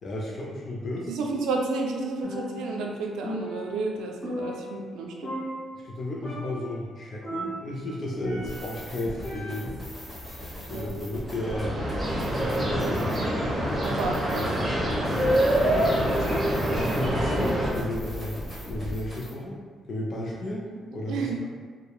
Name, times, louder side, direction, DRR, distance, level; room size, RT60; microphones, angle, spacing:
voice 1, 0.0-1.1 5.7-9.8 10.7-11.8 12.5-13.1 14.7-14.8 15.1-15.2 15.6-18.3 18.6-19.6 19.9-20.6 20.9-21.3, left 1 dB, 50° left, -3 dB, 0.4 m, -33 dB
voice 2, 1.1-5.3 10.6-10.9 13.8-14.5 21.1-21.4, right 3 dB, 85° right, 1 dB, 0.3 m, -31 dB
Percussion, 2.2-2.9 3.2-5.0 5.2-5.9 6.2-6.7 7.2-8.8 9.2-9.9, equal, 25° left, 1.0 m, -36 dB
sound 1, 8.4-19.3, equal, ahead, 1.1 m, -38 dB
sound 2, 11.2-17.7, equal, 25° right, 0.8 m, -25 dB
2.9 x 2.0 x 2.3 m, 1.5 s
cardioid pair, 90°, 0 cm